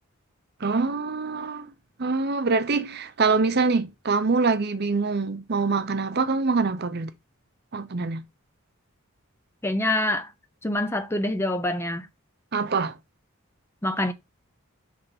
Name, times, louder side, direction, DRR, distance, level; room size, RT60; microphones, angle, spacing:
voice 1, 0.6-1.7 2.0-7.1 7.7-8.2 12.5-13.0, right 4 dB, 50° right, 0.7 m, -24 dB
voice 2, 9.6-10.3 10.6-12.1 13.8-14.1, left 1 dB, 10° left, 0.5 m, -25 dB
5.4 x 3.5 x 5.2 m
head